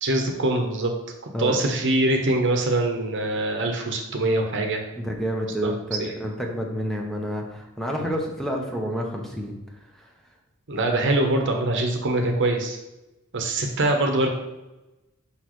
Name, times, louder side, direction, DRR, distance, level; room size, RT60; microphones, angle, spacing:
voice 1, 0.0-0.9 1.4-4.8 5.6-5.7 6.0-6.1 10.7-12.8 13.3-14.3, right 2 dB, 60° right, 3 dB, 0.9 m, -23 dB
voice 2, 5.0-9.5 10.0-10.1, equal, ahead, 0 dB, 0.8 m, -29 dB
6.2 x 5.6 x 3.1 m, 0.99 s
head